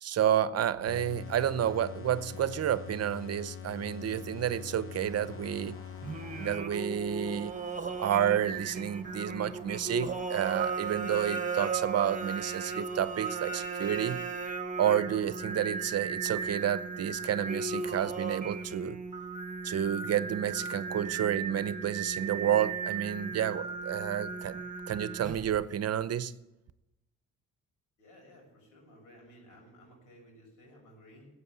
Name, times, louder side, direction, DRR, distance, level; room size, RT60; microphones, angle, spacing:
voice 1, 0.0-5.8 6.4-7.5 8.0-14.2 14.8-19.0 19.6-26.3, right 10 dB, 55° right, 15 dB, 0.8 m, -30 dB
sound 1, 0.9-7.0, left 8 dB, 45° left, 0.8 m, -44 dB
sound 2, 5.0-10.9, right 1 dB, 15° left, 2.5 m, -56 dB
Singing, 6.0-25.6, right 5 dB, 25° right, 1.4 m, -36 dB
voice 2, 28.0-31.3, equal, 85° left, 1 dB, 6.9 m, -56 dB
15.0 x 8.3 x 8.3 m, 0.96 s
cardioid pair, 90°, 30 cm